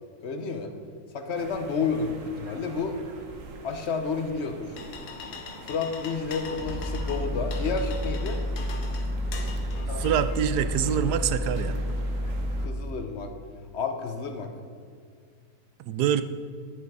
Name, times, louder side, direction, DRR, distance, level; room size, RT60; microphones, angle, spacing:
voice 1, 0.2-0.7 1.1-3.0 3.6-4.7 5.7-8.4 12.6-13.3 13.7-14.5, left 5 dB, 50° left, 6 dB, 0.9 m, -30 dB
sound 1, 1.3-12.7, right 3 dB, 60° right, 1.2 m, -44 dB
sound 2, 4.3-12.3, left 5 dB, 80° left, 1.4 m, -43 dB
sound 3, 6.6-12.7, equal, 10° right, 0.4 m, -30 dB
voice 2, 10.0-11.8 15.9-16.2, right 9 dB, 90° right, 12 dB, 1.2 m, -25 dB
9.8 x 7.5 x 4.7 m, 2.1 s
omnidirectional pair, 1.7 m